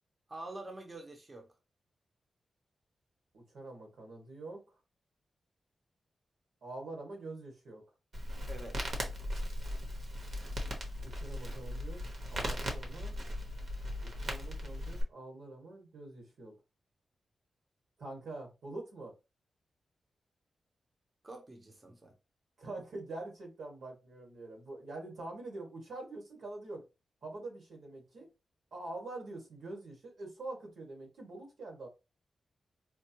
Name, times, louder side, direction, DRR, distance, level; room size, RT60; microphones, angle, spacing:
voice 1, 0.3-1.5 8.5-8.8 21.2-22.1, right 2 dB, 30° right, 0.7 m, -46 dB
voice 2, 3.3-4.6 6.6-7.8 11.0-12.0 12.3-13.2 14.0-16.5 18.0-19.1 22.6-26.8 27.2-28.3 28.7-31.9, right 2 dB, 90° right, 1.6 m, -45 dB
Crackle, 8.1-15.0, equal, 60° right, 0.9 m, -38 dB
4.4 x 2.0 x 2.8 m
wide cardioid pair, 105°, 0 cm